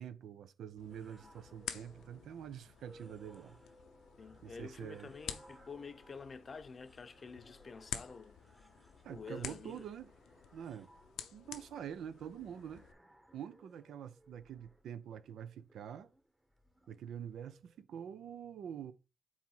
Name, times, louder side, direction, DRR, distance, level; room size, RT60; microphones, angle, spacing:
voice 1, 0.0-3.6 4.4-5.1 9.0-10.1 10.5-10.9 11.3-12.8 13.3-16.1 16.9-18.9, right 9 dB, 80° right, 0.5 m, -46 dB
sound 1, 0.8-12.9, left 9 dB, 85° left, 0.6 m, -50 dB
sound 2, 0.9-17.8, equal, 15° right, 1.1 m, -63 dB
voice 2, 4.2-8.3 9.1-9.8, left 4 dB, 45° left, 0.6 m, -49 dB
4.7 x 4.1 x 5.5 m
cardioid pair, 65°, 0 cm